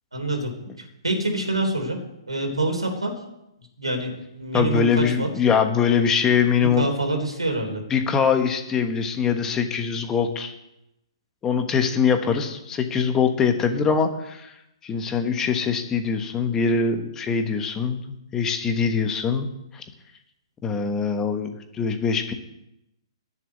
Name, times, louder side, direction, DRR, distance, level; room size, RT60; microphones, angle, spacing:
voice 1, 0.1-0.5 0.8-2.0 2.3-3.1 3.8-4.1 4.4-5.3 6.7-7.8, right 2 dB, 90° right, 3 dB, 3.8 m, -26 dB
voice 2, 4.5-6.9 7.9-10.6 11.4-14.5 14.8-18.0 18.3-19.5 19.7-19.8 20.6-22.3, left 6 dB, 15° left, 7 dB, 1.2 m, -23 dB
10.5 x 7.2 x 9.3 m, 0.87 s
figure-of-eight pair, 125°, 3 cm